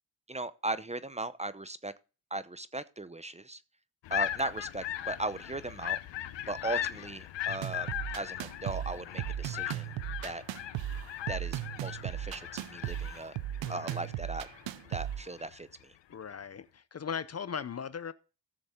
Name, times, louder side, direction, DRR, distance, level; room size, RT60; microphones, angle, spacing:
voice 1, 0.3-1.9 2.3-3.6 4.1-6.0 6.5-9.9 10.2-10.4 11.3-13.3 13.7-14.5 14.9-15.9, right 2 dB, 15° right, 0.7 m, -38 dB
sound 1, 4.0-15.6, left 13 dB, 70° left, 0.9 m, -39 dB
sound 2, 7.5-15.5, right 12 dB, 75° right, 0.7 m, -37 dB
voice 2, 13.6-14.1 16.1-18.1, left 7 dB, 35° left, 0.6 m, -39 dB
15.0 x 6.9 x 3.7 m
cardioid pair, 70°, 45 cm